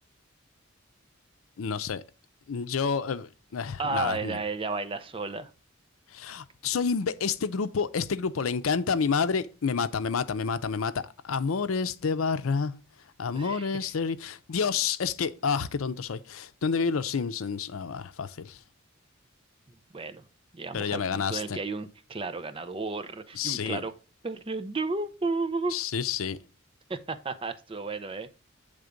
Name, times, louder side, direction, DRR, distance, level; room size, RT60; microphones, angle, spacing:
voice 1, 1.6-2.0 2.5-4.4 6.1-12.7 13.2-18.6 20.7-21.6 23.4-23.8 25.7-26.4, left 5 dB, 90° left, 0.6 m, -29 dB
voice 2, 3.8-5.5 13.3-13.9 19.7-20.3 20.5-23.9 24.2-25.8 26.9-28.3, right 3 dB, 25° right, 0.6 m, -33 dB
8.1 x 3.5 x 5.1 m
head